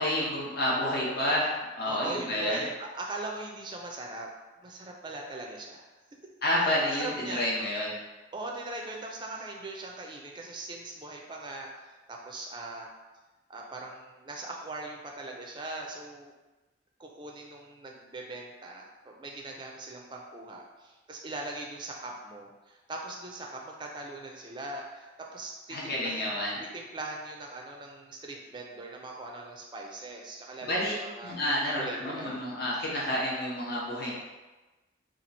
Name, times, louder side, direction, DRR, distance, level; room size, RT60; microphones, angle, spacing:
voice 1, 0.0-1.5 1.8-2.6 6.4-7.9 25.7-26.6 30.6-30.9 31.2-34.1, left 1 dB, 55° left, -5 dB, 0.9 m, -29 dB
voice 2, 1.9-4.3 4.6-5.8 6.9-7.5 8.3-12.9 13.5-16.3 17.0-31.4 31.8-32.4, right 2 dB, 25° right, 0 dB, 0.4 m, -40 dB
2.9 x 2.4 x 4.0 m, 1.2 s
head